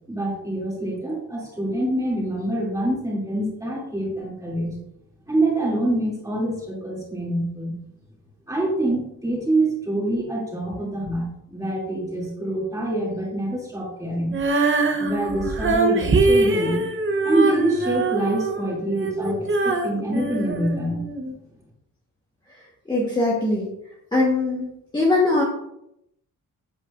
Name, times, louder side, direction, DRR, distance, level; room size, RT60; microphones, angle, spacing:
voice 1, 0.1-4.8 5.3-7.7 8.5-14.3 15.0-16.8 17.2-21.3, right 1 dB, 10° right, -5 dB, 2.6 m, -26 dB
Female singing, 14.3-21.3, right 3 dB, 40° right, 0.9 m, -23 dB
voice 2, 22.9-23.7 24.1-24.7 24.9-25.4, left 2 dB, 15° left, -5 dB, 1.3 m, -21 dB
8.8 x 7.7 x 2.5 m, 0.80 s
wide cardioid pair, 180°, 33 cm